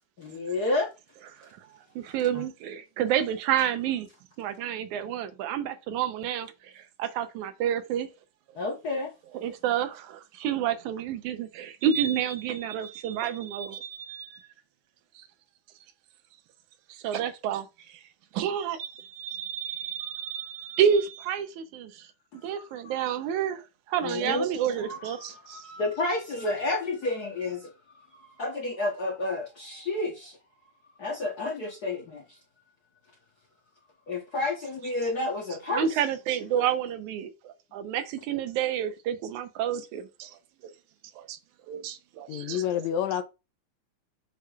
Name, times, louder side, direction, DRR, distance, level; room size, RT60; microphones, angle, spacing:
voice 1, 0.2-0.9 2.3-2.4 8.5-9.1 20.7-20.8 22.3-22.7 24.0-27.7 28.1-30.4 31.0-32.4 34.1-35.9, left 2 dB, 60° left, 1.0 m, -31 dB
voice 2, 1.3-1.7 2.0-4.1 4.4-8.1 9.3-14.5 15.2-15.3 16.9-18.0 18.3-22.1 22.4-25.6 35.7-40.4 41.2-41.4 41.7-42.7, right 9 dB, 90° right, 2.2 m, -30 dB
voice 3, 42.3-43.2, left 10 dB, 80° left, 2.0 m, -28 dB
6.7 x 6.6 x 2.4 m
omnidirectional pair, 3.3 m